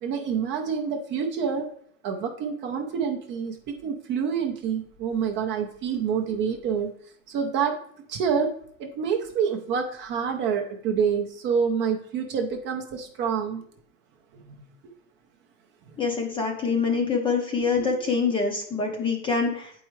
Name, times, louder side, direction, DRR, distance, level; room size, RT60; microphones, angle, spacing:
voice 1, 0.0-1.7 2.0-6.9 7.3-7.8 8.1-13.6 14.3-14.6 17.8-17.9, right 6 dB, 30° right, 3 dB, 0.6 m, -27 dB
voice 2, 16.0-19.7, left 5 dB, 15° left, 2 dB, 0.6 m, -25 dB
7.7 x 4.6 x 3.1 m, 0.64 s
supercardioid pair, 140°, 39 cm